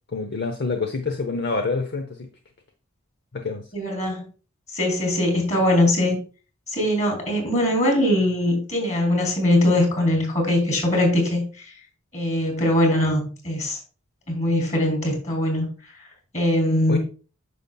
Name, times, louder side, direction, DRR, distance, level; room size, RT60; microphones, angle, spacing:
voice 1, 0.1-2.3 3.3-3.7 16.9-17.0, left 4 dB, 55° left, 6 dB, 0.8 m, -27 dB
voice 2, 3.7-4.3 4.7-6.2 6.7-11.4 12.1-13.8 14.3-15.7 16.3-17.0, left 1 dB, 35° left, 2 dB, 3.7 m, -21 dB
9.4 x 6.8 x 2.3 m, 0.36 s
head